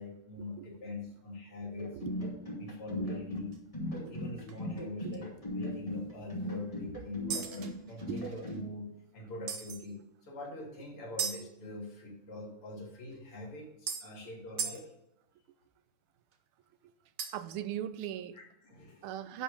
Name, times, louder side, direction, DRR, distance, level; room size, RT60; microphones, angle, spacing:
voice 1, 0.0-1.9 2.5-3.6 4.0-8.9 9.1-14.9 18.3-19.1, left 2 dB, 80° left, -1 dB, 3.1 m, -43 dB
sound 1, 1.8-8.6, left 1 dB, 15° left, 2.3 m, -38 dB
sound 2, 3.4-3.6 4.1-4.2 4.5-4.6 5.1-5.2 7.3-8.6 9.5-9.8 11.2-11.4 13.1-13.2 13.9-14.1 14.6-14.8 17.2-17.5, right 7 dB, 55° right, 1.2 m, -37 dB
voice 2, 17.3-18.4 19.0-19.4, right 11 dB, 85° right, 13 dB, 1.5 m, -39 dB
10.5 x 5.0 x 5.0 m, 0.84 s
omnidirectional pair, 2.4 m